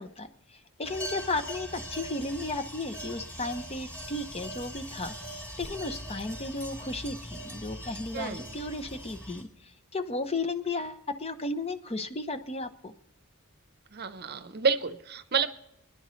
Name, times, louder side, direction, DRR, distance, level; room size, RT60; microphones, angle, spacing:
voice 1, 0.0-5.2 5.6-12.9, left 2 dB, 25° left, 10 dB, 0.7 m, -34 dB
sound 1, 0.8-9.4, equal, 10° left, 3.7 m, -41 dB
voice 2, 8.1-8.5 13.9-15.6, right 5 dB, 45° right, 12 dB, 0.7 m, -30 dB
28.5 x 10.5 x 3.1 m, 0.82 s
head